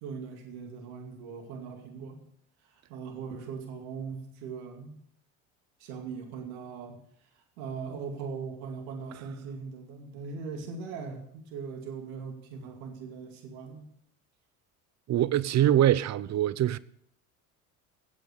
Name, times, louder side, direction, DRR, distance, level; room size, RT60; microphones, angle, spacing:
voice 1, 0.0-2.2 2.6-5.0 5.8-7.0 7.3-13.8, right 5 dB, 70° right, 2.4 m, -40 dB
voice 2, 15.1-16.8, right 12 dB, 40° right, 0.7 m, -23 dB
16.0 x 8.4 x 6.6 m
hypercardioid pair, 70°, 43 cm